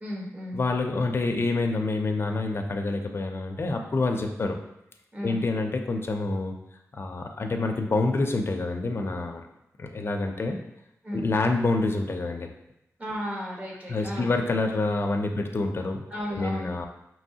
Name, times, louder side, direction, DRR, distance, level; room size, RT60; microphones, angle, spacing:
voice 1, 0.0-0.6 5.1-5.4 11.0-11.3 13.0-14.3 16.1-16.9, equal, 25° right, -4 dB, 1.2 m, -34 dB
voice 2, 0.5-4.6 5.2-6.6 6.9-9.4 9.8-10.6 11.1-12.5 13.9-16.0 16.3-16.9, left 3 dB, 45° left, 4 dB, 0.5 m, -27 dB
5.4 x 2.9 x 2.8 m, 0.84 s
wide cardioid pair, 100°, 6 cm